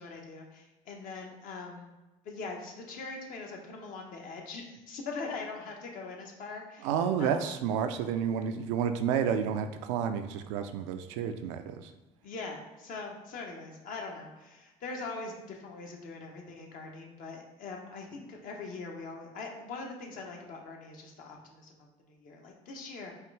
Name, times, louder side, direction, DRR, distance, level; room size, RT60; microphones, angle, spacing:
voice 1, 0.0-1.9 2.2-6.9 7.2-7.5 12.2-23.1, left 3 dB, 60° left, 1 dB, 1.0 m, -42 dB
voice 2, 6.8-11.9, right 8 dB, 90° right, 8 dB, 0.4 m, -30 dB
4.7 x 2.5 x 3.2 m, 1.1 s
supercardioid pair, 80°, 16 cm